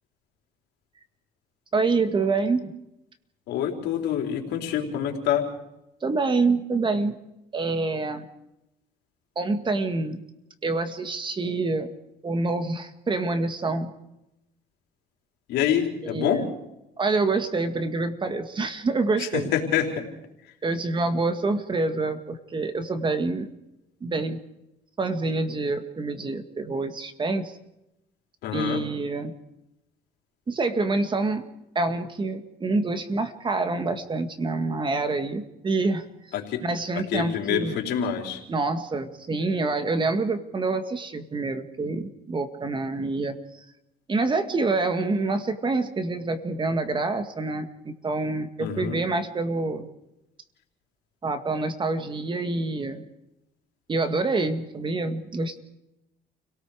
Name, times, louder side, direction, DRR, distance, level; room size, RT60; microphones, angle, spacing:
voice 1, 1.7-2.7 6.0-7.2 7.5-8.2 9.4-10.2 10.6-11.9 12.2-13.9 16.0-16.5 17.0-19.5 20.6-23.5 24.0-24.4 25.0-27.6 28.5-29.3 30.5-31.4 31.8-36.0 36.6-37.8 38.5-43.6 44.1-49.9 51.2-53.1 53.9-55.6, right 3 dB, 30° right, 8 dB, 1.9 m, -26 dB
voice 2, 3.5-5.5 15.5-16.4 19.2-20.0 28.4-28.8 36.3-36.6 36.9-38.4 48.6-49.0, left 9 dB, 80° left, 2 dB, 4.0 m, -26 dB
29.5 x 18.0 x 5.0 m, 0.88 s
cardioid pair, 110°, 17 cm